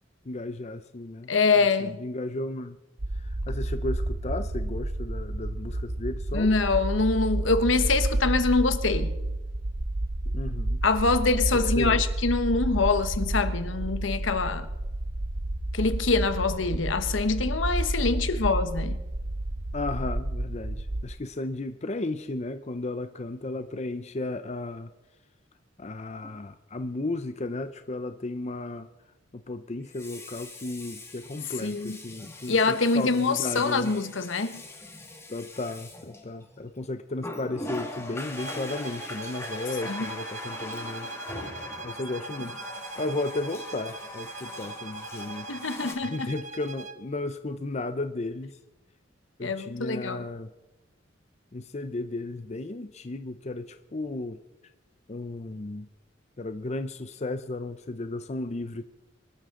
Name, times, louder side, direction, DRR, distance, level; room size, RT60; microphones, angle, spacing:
voice 1, 0.2-2.8 3.2-6.6 10.3-10.8 11.5-12.0 19.7-24.9 25.8-28.9 29.3-34.0 35.3-41.1 41.8-42.6 43.0-45.5 46.0-48.6 49.4-50.5 51.5-54.4 55.1-55.9 56.4-58.8, left 2 dB, 35° left, 0.6 m, -34 dB
voice 2, 1.3-2.0 6.3-9.1 10.8-14.7 15.7-19.0 31.6-32.0 32.5-34.6 39.9-40.1 45.5-46.3 49.4-50.3, left 3 dB, 75° left, 1.1 m, -25 dB
sound 1, 3.0-21.0, right 1 dB, 70° right, 1.2 m, -30 dB
Water tap faucet, 26.2-26.4 29.8-36.6 37.2-45.9, left 1 dB, 15° left, 2.0 m, -41 dB
sound 2, 38.4-47.1, right 3 dB, 40° right, 0.8 m, -41 dB
24.0 x 13.0 x 3.8 m
head